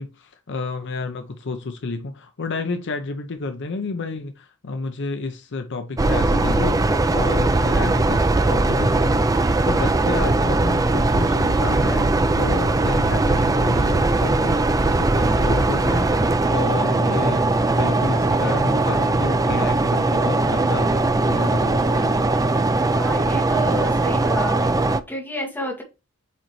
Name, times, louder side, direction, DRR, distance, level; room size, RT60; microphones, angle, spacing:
voice 1, 0.0-22.3, left 3 dB, 60° left, 0.7 m, -31 dB
sound 1, 6.0-25.0, right 2 dB, 15° right, 0.4 m, -20 dB
voice 2, 9.7-10.1 22.9-24.6 25.1-25.8, equal, 10° left, 2.1 m, -30 dB
8.4 x 3.9 x 3.1 m
head